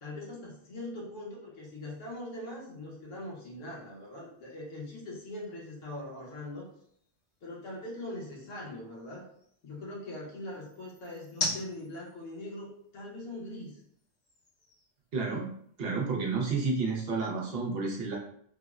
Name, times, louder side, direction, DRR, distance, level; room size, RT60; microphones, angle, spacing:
voice 1, 0.0-6.7 7.4-9.2 9.6-13.8, left 1 dB, 85° left, -4 dB, 1.3 m, -41 dB
sound 1, 1.6-15.8, left 2 dB, 65° left, 1.3 m, -45 dB
voice 2, 15.1-15.5 15.8-18.2, right 4 dB, 60° right, -2 dB, 0.7 m, -30 dB
3.5 x 2.0 x 2.3 m, 0.66 s
omnidirectional pair, 1.3 m